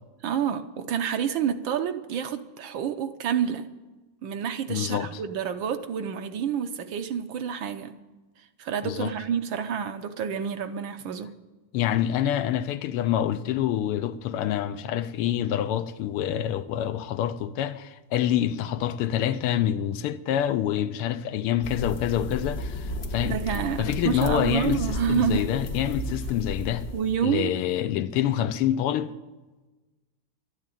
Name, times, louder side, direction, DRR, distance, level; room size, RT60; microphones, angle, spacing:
voice 1, 0.2-3.7 4.2-7.9 8.6-11.3 23.2-25.5 26.9-27.5, right 8 dB, 65° right, 1.5 m, -28 dB
voice 2, 4.7-5.1 8.8-9.1 11.7-23.4 23.8-26.9 27.2-29.1, left 11 dB, 85° left, 1.7 m, -26 dB
sound 1, 21.6-27.2, left 1 dB, 45° left, 0.9 m, -33 dB
12.5 x 9.8 x 9.0 m
omnidirectional pair, 2.4 m